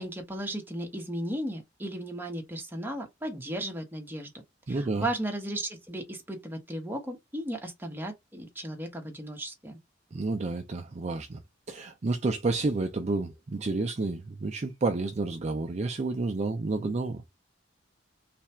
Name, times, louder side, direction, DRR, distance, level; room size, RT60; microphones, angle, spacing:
voice 1, 0.0-4.3 4.7-9.8, right 1 dB, 10° right, 1.0 m, -35 dB
voice 2, 4.7-5.1 10.1-11.4 11.7-17.4, right 3 dB, 35° right, 0.5 m, -30 dB
3.3 x 2.4 x 4.2 m
head